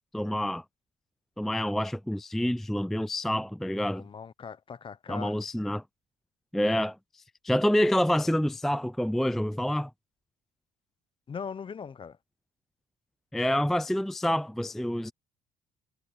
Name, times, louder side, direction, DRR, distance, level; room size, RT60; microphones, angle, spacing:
voice 1, 0.1-0.6 1.4-4.0 5.1-5.8 6.5-9.9 13.3-15.1, equal, ahead, 0.4 m, -27 dB
voice 2, 3.9-5.4 11.3-12.2, left 6 dB, 30° left, 0.8 m, -40 dB
cardioid pair, 110°, 17 cm